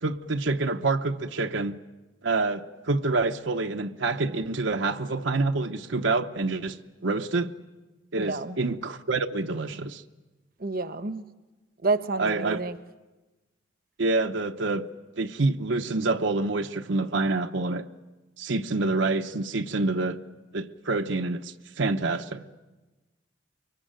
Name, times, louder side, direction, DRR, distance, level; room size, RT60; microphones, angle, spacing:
voice 1, 0.0-1.8 2.2-7.5 8.1-10.0 12.2-12.6 14.0-14.8 15.2-17.9 18.4-20.2 20.5-22.5, right 3 dB, 70° right, 0.8 m, -27 dB
voice 2, 8.2-8.6 10.6-11.2 11.8-12.8, right 3 dB, 50° right, 0.9 m, -29 dB
24.5 x 22.5 x 9.0 m
head